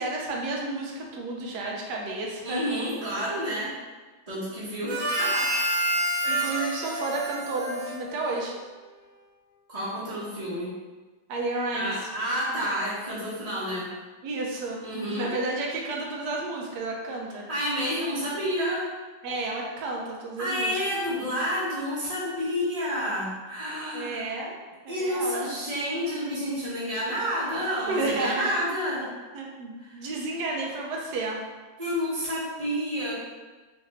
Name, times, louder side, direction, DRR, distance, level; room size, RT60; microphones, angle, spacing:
voice 1, 0.0-2.6 6.2-8.6 11.3-11.9 14.2-14.8 15.2-17.5 19.2-20.8 23.9-24.6 24.8-25.5 25.8-26.5 27.9-28.5 29.3-31.4, right 2 dB, 75° right, -1 dB, 1.2 m, -31 dB
voice 2, 2.4-3.7 4.3-5.5 9.7-10.7 11.7-13.9 14.8-15.3 17.5-18.9 20.4-24.2 24.9-29.1 29.8-30.0 31.8-33.1, equal, 30° right, -10 dB, 0.8 m, -29 dB
Harmonica, 4.8-8.6, right 1 dB, 60° right, 1.1 m, -28 dB
3.8 x 2.6 x 3.0 m, 1.3 s
omnidirectional pair, 1.8 m